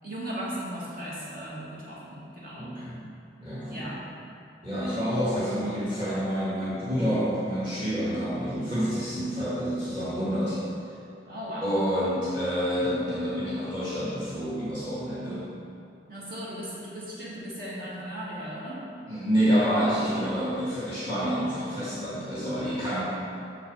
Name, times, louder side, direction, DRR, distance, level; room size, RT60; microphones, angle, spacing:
voice 1, 0.0-2.7 3.7-4.0 11.2-11.7 16.1-18.9, equal, 55° right, -8 dB, 2.3 m, -37 dB
voice 2, 2.5-3.0 3.4-3.9 4.6-10.6 11.6-15.5 19.1-23.1, equal, 25° right, -11 dB, 1.7 m, -28 dB
8.4 x 6.4 x 4.8 m, 2.5 s
head